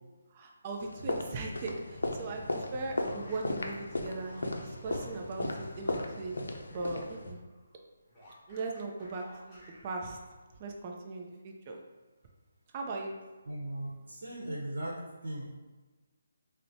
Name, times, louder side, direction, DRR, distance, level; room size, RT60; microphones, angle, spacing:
voice 1, 0.3-6.4 6.7-7.4 8.5-10.2 10.6-11.8 12.7-13.2, right 3 dB, 30° right, 1 dB, 0.4 m, -39 dB
sound 1, 0.8-7.3, left 2 dB, 80° left, 0.4 m, -36 dB
sound 2, 2.3-7.0 7.3-10.6, equal, 15° left, 1.1 m, -57 dB
voice 2, 13.4-15.5, right 1 dB, 70° right, -5 dB, 0.8 m, -38 dB
4.2 x 2.1 x 2.7 m, 1.2 s
figure-of-eight pair, 155°, 0 cm